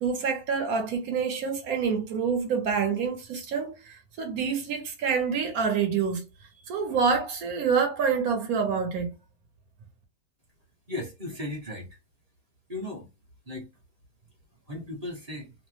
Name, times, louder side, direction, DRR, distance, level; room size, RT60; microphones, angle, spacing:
voice 1, 0.0-6.2 6.7-9.1, right 6 dB, 65° right, 1.2 m, -27 dB
voice 2, 10.9-11.9 12.7-13.0 13.5-13.6 14.7-15.5, left 1 dB, 30° right, 0.8 m, -36 dB
2.9 x 2.0 x 3.1 m
omnidirectional pair, 1.7 m